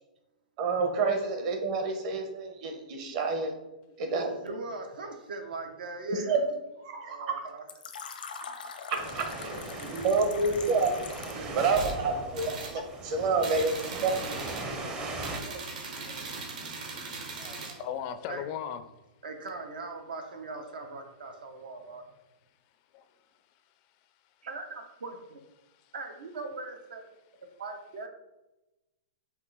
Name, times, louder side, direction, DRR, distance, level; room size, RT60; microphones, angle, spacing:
voice 1, 0.6-3.5 4.0-4.3 6.1-6.4 6.8-7.2 9.1-9.2 9.9-11.0 11.5-13.7 14.0-14.9 15.4-15.6 16.1-16.3 17.4-17.8, right 4 dB, 45° right, 4 dB, 0.9 m, -29 dB
voice 2, 4.1-6.4 7.0-7.6 9.1-9.2 9.5-10.1 10.4-10.6 11.3-11.9 12.4-12.5 18.3-18.4 19.2-22.0 24.4-25.4 25.9-27.0 27.4-28.1, right 3 dB, 80° right, 5 dB, 0.9 m, -41 dB
Fill (with liquid), 7.7-11.5, left 6 dB, 85° left, 0.6 m, -43 dB
sound 1, 8.9-15.4, right 2 dB, 20° right, 0.6 m, -39 dB
sound 2, 11.7-12.0 12.3-12.8 13.4-14.7 15.2-17.8, right 3 dB, 60° right, 1.1 m, -39 dB
voice 3, 17.8-18.8 22.9-23.0 25.8-25.9, left 9 dB, 35° left, 9 dB, 0.3 m, -36 dB
5.4 x 2.5 x 3.9 m, 1.0 s
hypercardioid pair, 150°, 5 cm